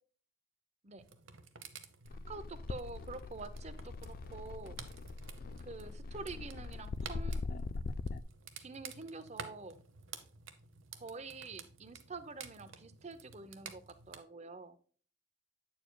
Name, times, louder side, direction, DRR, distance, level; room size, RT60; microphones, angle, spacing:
sound 1, 1.0-14.2, right 6 dB, 85° right, 0.9 m, -52 dB
sound 2, 2.1-8.2, left 3 dB, 45° left, 0.3 m, -41 dB
voice 1, 2.1-4.8 5.6-7.4 8.6-9.8 10.9-14.8, right 3 dB, 35° right, 12 dB, 0.6 m, -47 dB
8.6 x 7.1 x 2.2 m, 0.44 s
head